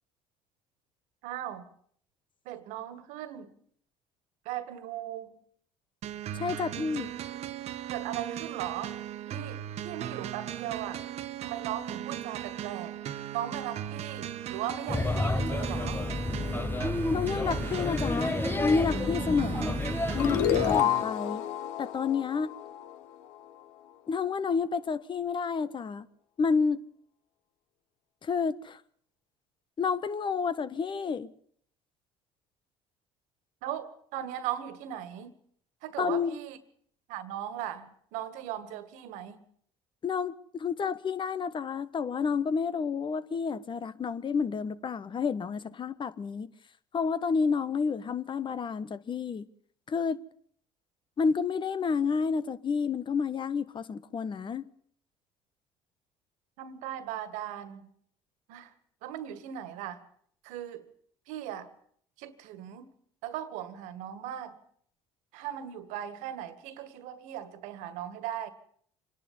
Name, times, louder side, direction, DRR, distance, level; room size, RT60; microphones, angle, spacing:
voice 1, 1.2-1.7 2.5-3.5 4.5-5.4 6.5-6.7 7.9-9.0 9.3-11.0 11.4-13.0 13.3-16.1 33.6-35.3 35.8-36.6 37.1-39.4 56.6-57.9 58.5-58.7 59.0-60.0 60.4-60.9 61.3-61.7 62.2-62.9 63.2-64.6 65.3-68.5, right 11 dB, 80° right, 2.0 m, -38 dB
sound 1, 6.0-21.0, right 11 dB, 60° right, 1.3 m, -38 dB
voice 2, 6.3-7.1 17.1-18.3 18.6-19.8 20.1-21.5 21.8-22.5 24.1-26.1 26.4-26.8 28.2-28.8 29.8-31.3 36.0-36.4 40.0-46.5 46.9-49.4 49.9-50.2 51.2-54.7, left 5 dB, 40° left, 1.3 m, -30 dB
Male speech man speaking / Child speech kid speaking / Chatter, 14.9-20.8, left 2 dB, 15° left, 1.1 m, -30 dB
sound 2, 20.2-23.4, left 11 dB, 85° left, 1.2 m, -29 dB
25.5 x 11.0 x 9.7 m
supercardioid pair, 70°, 12 cm